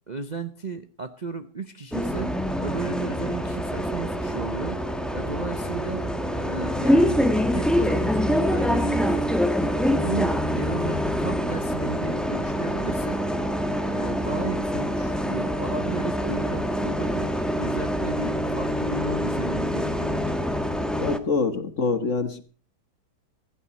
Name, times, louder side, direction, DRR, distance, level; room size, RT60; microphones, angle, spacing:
voice 1, 0.1-2.3 2.6-4.8 5.1-7.2 7.5-9.1 9.7-13.2 13.8-17.3 17.6-20.3, right 4 dB, 35° right, 8 dB, 0.7 m, -34 dB
Bus, 1.9-21.2, equal, ahead, 1.1 m, -25 dB
voice 2, 21.0-22.4, left 4 dB, 50° left, 10 dB, 1.7 m, -25 dB
16.0 x 15.0 x 4.2 m, 0.36 s
omnidirectional pair, 1.8 m